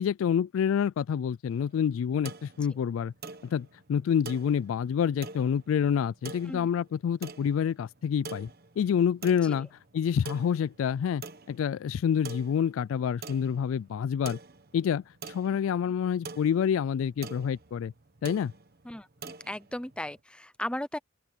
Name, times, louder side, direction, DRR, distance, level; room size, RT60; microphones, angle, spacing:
voice 1, 0.0-3.1 3.5-8.5 8.8-9.7 9.9-11.2 11.5-14.4 14.7-17.9 18.2-18.5, left 8 dB, 90° left, 0.3 m, -27 dB
sound 1, 1.5-20.2, right 4 dB, 50° right, 1.2 m, -46 dB
voice 2, 18.8-21.0, left 1 dB, 5° left, 0.6 m, -36 dB
open air
head